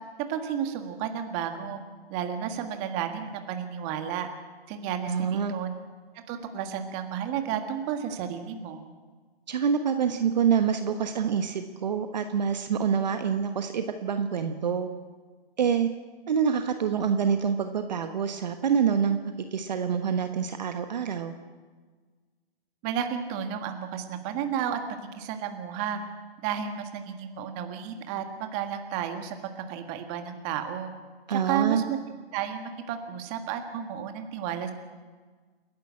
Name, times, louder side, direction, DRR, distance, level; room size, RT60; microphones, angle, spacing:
voice 1, 0.3-1.8 2.1-4.3 4.7-5.7 6.3-8.8 22.8-24.8 25.2-26.0 26.4-30.9 31.3-32.0 32.3-34.7, right 9 dB, 20° right, 6 dB, 1.6 m, -32 dB
voice 2, 5.1-5.5 9.5-14.9 15.6-15.9 16.3-19.2 19.5-21.3 31.3-31.8, right 7 dB, 45° right, 8 dB, 1.3 m, -26 dB
29.5 x 11.5 x 8.8 m, 1.4 s
figure-of-eight pair, 145°, 31 cm